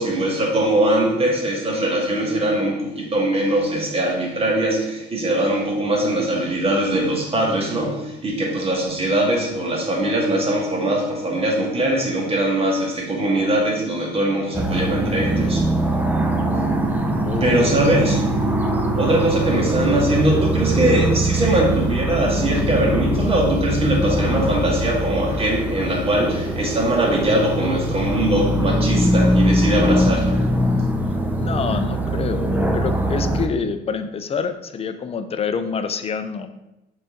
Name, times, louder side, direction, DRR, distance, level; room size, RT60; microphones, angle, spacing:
voice 1, 0.0-16.1 17.4-18.3 19.0-30.5, right 1 dB, 30° right, -1 dB, 1.9 m, -21 dB
sound 1, 14.5-33.5, right 1 dB, 10° right, 0.7 m, -22 dB
voice 2, 17.2-18.1 19.5-19.6 31.4-36.5, left 5 dB, 30° left, 10 dB, 0.5 m, -27 dB
6.7 x 4.1 x 3.8 m, 0.93 s
cardioid pair, 110°, 20 cm